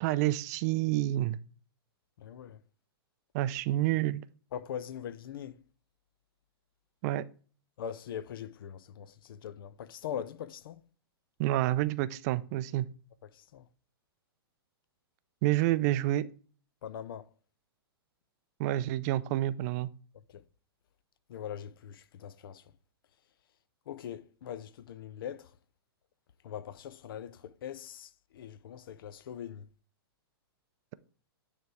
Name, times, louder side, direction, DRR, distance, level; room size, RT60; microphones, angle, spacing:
voice 1, 0.0-1.4 3.3-4.2 7.0-7.2 11.4-12.9 15.4-16.3 18.6-19.9, right 15 dB, 40° right, 0.4 m, -28 dB
voice 2, 2.2-2.6 4.5-5.6 7.8-10.8 13.3-13.7 16.8-17.2 20.3-20.4 21.3-22.7 23.9-25.5 26.4-29.7, left 9 dB, 60° left, 0.5 m, -41 dB
9.3 x 3.3 x 4.7 m
hypercardioid pair, 120°, 13 cm